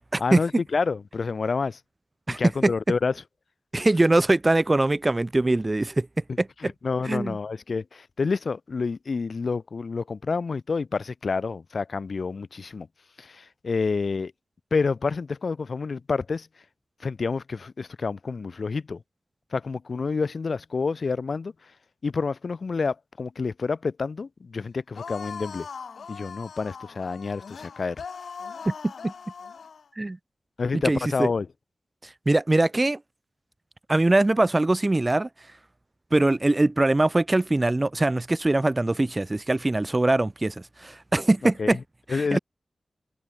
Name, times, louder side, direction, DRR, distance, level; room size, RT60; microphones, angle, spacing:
voice 1, 0.2-1.8 2.3-3.1 6.6-12.9 13.2-14.3 14.7-16.5 17.0-19.0 19.5-21.5 22.0-25.7 26.1-28.0 30.6-31.5 41.6-41.8 42.1-42.4, left 4 dB, 65° left, 1.5 m, -28 dB
voice 2, 2.3-2.7 3.7-6.1 6.4-6.7 7.0-7.4 28.7-29.1 30.0-30.2 30.7-31.3 32.3-33.0 33.9-35.3 36.1-40.5 40.8-41.8 42.1-42.4, right 2 dB, 25° right, 0.7 m, -22 dB
sound 1, 24.9-29.8, left 6 dB, 90° left, 1.9 m, -40 dB
open air
wide cardioid pair, 80°, 0 cm